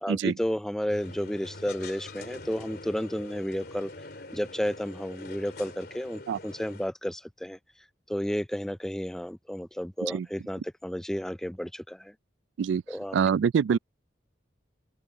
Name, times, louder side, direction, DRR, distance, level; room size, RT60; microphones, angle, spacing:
voice 1, 0.0-3.9 4.3-7.6 8.1-12.1 12.9-13.2, equal, 5° left, 0.3 m, -32 dB
sound 1, 0.9-6.9, left 2 dB, 55° left, 3.5 m, -44 dB
voice 2, 13.1-13.8, right 7 dB, 80° right, 0.3 m, -25 dB
head